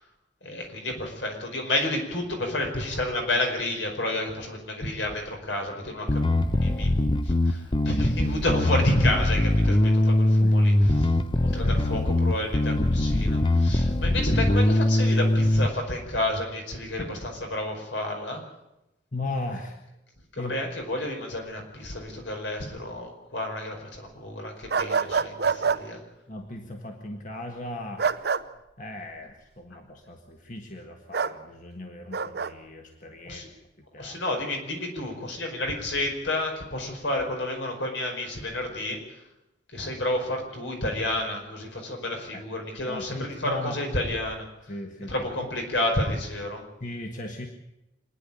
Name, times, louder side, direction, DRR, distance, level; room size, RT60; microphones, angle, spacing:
voice 1, 0.4-6.9 7.2-11.1 11.4-18.4 20.3-26.0 33.2-33.5 34.0-39.0 39.7-44.5 45.1-46.6, left 1 dB, 80° left, 2 dB, 5.1 m, -30 dB
Bass guitar, 6.1-15.7, left 1 dB, 25° left, 0.7 m, -22 dB
voice 2, 14.1-14.4 19.1-19.8 20.4-20.6 26.3-28.1 28.8-33.4 33.9-34.2 42.3-42.4 42.8-43.8 44.7-45.2 46.8-47.5, left 2 dB, 45° left, 3 dB, 1.7 m, -37 dB
sound 1, 24.7-25.8 28.0-28.4 31.1-31.3 32.1-32.5, right 5 dB, 60° right, 0.8 m, -25 dB
26.0 x 10.0 x 10.0 m, 0.92 s
head